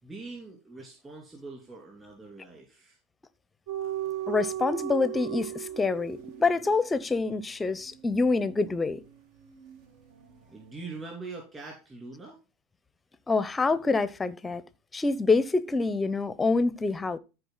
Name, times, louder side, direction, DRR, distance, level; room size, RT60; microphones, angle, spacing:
voice 1, 0.0-3.0 10.5-12.4, right 3 dB, 20° right, 2.9 m, -43 dB
sound 1, 3.7-10.4 10.7-11.0, right 11 dB, 65° right, 1.6 m, -38 dB
voice 2, 4.3-9.0 13.3-14.6 14.9-17.2, left 3 dB, 15° left, 0.6 m, -26 dB
13.5 x 4.7 x 3.9 m
supercardioid pair, 130°, 0 cm